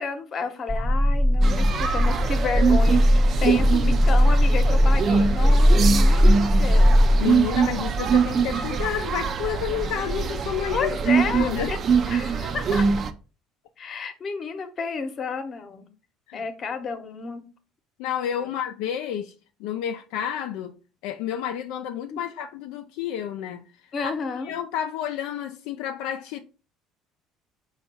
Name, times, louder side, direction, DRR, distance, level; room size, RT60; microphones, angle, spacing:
voice 1, 0.0-7.0 10.7-11.8 12.1-12.9 13.8-15.9 16.3-17.4 22.1-22.2 23.9-24.5, left 5 dB, 45° left, 0.8 m, -31 dB
sound 1, 0.7-7.2, equal, 5° left, 0.6 m, -18 dB
sound 2, 1.4-13.1, right 5 dB, 45° right, 0.4 m, -24 dB
voice 2, 7.2-10.9 11.2-11.7 16.3-16.4 18.0-19.3 19.6-20.8 21.0-23.7 24.4-26.4, left 10 dB, 80° left, 0.3 m, -30 dB
4.4 x 2.3 x 4.2 m
supercardioid pair, 95°, 0 cm